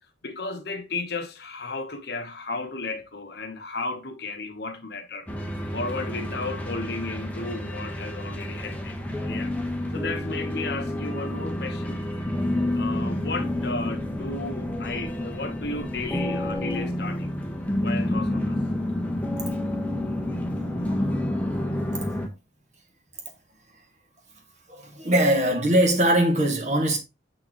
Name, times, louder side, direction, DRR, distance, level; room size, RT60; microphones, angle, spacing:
voice 1, 0.2-5.3 5.7-9.5 9.9-12.1 12.7-17.4 17.8-18.6, left 3 dB, 55° left, 1.1 m, -34 dB
sound 1, 5.3-22.3, left 1 dB, 10° left, 1.0 m, -29 dB
voice 2, 24.7-27.0, right 1 dB, 40° right, 2.0 m, -21 dB
7.2 x 6.8 x 3.0 m
head